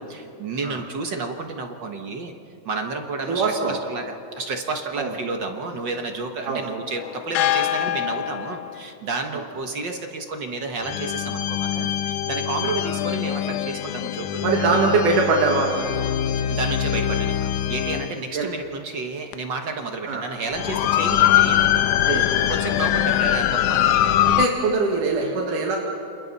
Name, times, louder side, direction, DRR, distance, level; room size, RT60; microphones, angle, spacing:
voice 1, 0.0-2.3 2.6-14.8 16.5-21.8 22.3-24.2 25.2-25.4, right 3 dB, 55° right, 4 dB, 1.3 m, -31 dB
voice 2, 3.2-3.8 5.0-5.1 6.5-6.6 9.3-9.4 12.6-12.8 14.4-15.7 18.3-18.5 20.1-20.2 22.1-22.4 22.9-23.0 24.3-25.8, right 4 dB, 90° right, 0 dB, 3.4 m, -22 dB
sound 1, 7.0-8.8 10.8-18.2 19.3-19.4 20.5-24.5, left 11 dB, 85° left, 2.2 m, -23 dB
29.5 x 27.5 x 4.1 m, 2.9 s
omnidirectional pair, 3.5 m